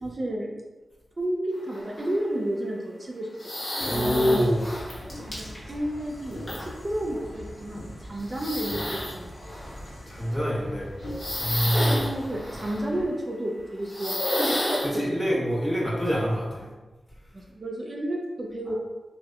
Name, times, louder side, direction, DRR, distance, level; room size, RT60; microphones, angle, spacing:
voice 1, 0.0-0.5 1.2-3.3 5.3-9.3 11.9-14.2 14.9-15.2 17.3-18.8, right 1 dB, 40° right, -1 dB, 0.3 m, -31 dB
sound 1, 1.7-2.2 3.4-5.7 6.5-6.6 7.1-7.2 8.2-9.1 9.4-9.8 10.4-10.5 11.1-12.9 13.8-14.9, left 1 dB, 50° left, 1.0 m, -30 dB
sound 2, 3.8-13.1, equal, 85° left, 0.4 m, -41 dB
voice 2, 3.8-4.7 10.1-10.9 11.4-12.0 14.8-16.6, equal, 20° left, -6 dB, 0.8 m, -25 dB
2.7 x 2.0 x 2.3 m, 1.2 s
cardioid pair, 60°, 0 cm